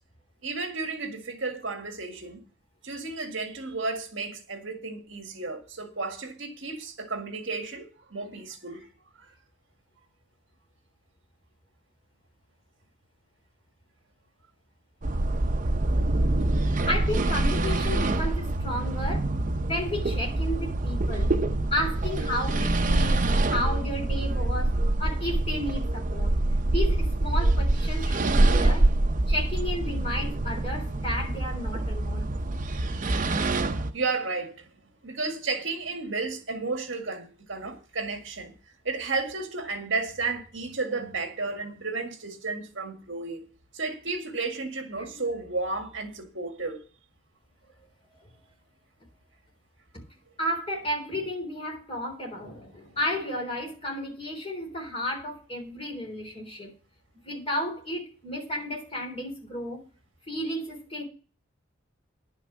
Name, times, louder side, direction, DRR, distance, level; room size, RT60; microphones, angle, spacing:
voice 1, 0.4-2.4 2.8-8.9 9.2-9.4 32.8-34.7 35.0-38.5 38.8-43.5 43.7-46.8, right 3 dB, 65° right, 1.9 m, -33 dB
sound 1, 15.0-33.9, right 2 dB, 40° right, 0.7 m, -25 dB
voice 2, 16.9-19.3 19.6-21.3 21.7-24.7 25.0-26.3 26.7-28.9 29.3-32.4 45.0-45.2 50.4-56.7 57.2-59.8 60.3-61.0, left 1 dB, 30° left, 3.7 m, -32 dB
10.5 x 6.0 x 7.3 m
head